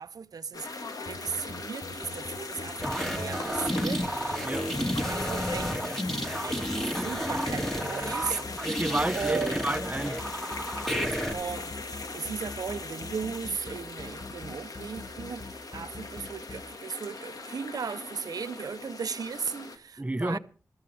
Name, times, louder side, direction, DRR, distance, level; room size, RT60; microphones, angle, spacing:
voice 1, 0.0-4.1 5.1-5.8 6.4-8.6 9.1-9.7 11.3-20.4, right 6 dB, 75° right, 0.6 m, -37 dB
sound 1, 0.5-19.8, left 3 dB, 70° left, 1.6 m, -39 dB
sound 2, 1.1-16.6, left 3 dB, 30° left, 1.1 m, -43 dB
sound 3, 2.8-11.3, equal, 5° left, 2.2 m, -31 dB
voice 2, 8.6-10.2 20.0-20.4, right 1 dB, 20° right, 0.8 m, -30 dB
22.0 x 13.5 x 3.4 m
cardioid pair, 45°, 6 cm